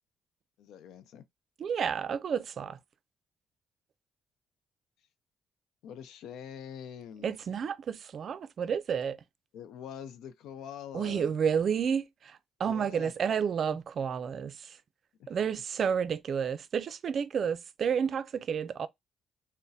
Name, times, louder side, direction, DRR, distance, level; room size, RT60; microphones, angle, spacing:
voice 1, 0.6-1.2 5.8-7.4 9.5-11.3 12.6-13.1 15.2-15.3, left 9 dB, 85° left, 0.3 m, -44 dB
voice 2, 1.6-2.8 7.2-9.2 10.9-14.8 15.3-18.9, right 7 dB, 55° right, 0.3 m, -31 dB
3.9 x 2.0 x 2.6 m
cardioid pair, 90°, 0 cm